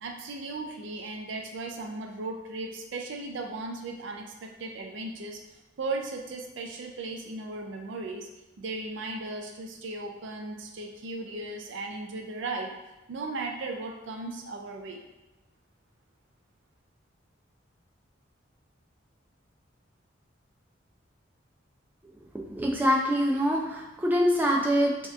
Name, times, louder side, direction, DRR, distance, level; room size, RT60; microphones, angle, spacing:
voice 1, 0.0-8.3 8.6-12.8 13.1-15.0, right 2 dB, 70° right, 3 dB, 0.4 m, -36 dB
voice 2, 22.5-24.9, equal, 10° right, -2 dB, 0.5 m, -24 dB
6.5 x 2.9 x 2.3 m, 1.0 s
head